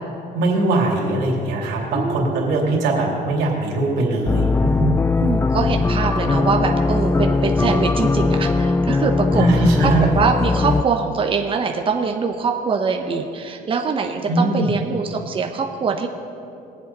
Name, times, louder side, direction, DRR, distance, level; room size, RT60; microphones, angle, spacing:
voice 1, 0.3-4.9 9.4-10.1 14.3-14.7, right 2 dB, 90° right, -2 dB, 2.9 m, -21 dB
voice 2, 1.9-2.5 5.2-16.1, right 5 dB, 30° right, 3 dB, 0.9 m, -23 dB
sound 1, 4.3-10.8, left 3 dB, 15° left, 0.3 m, -19 dB
21.5 x 7.9 x 4.1 m, 2.7 s
cardioid pair, 110°, 17 cm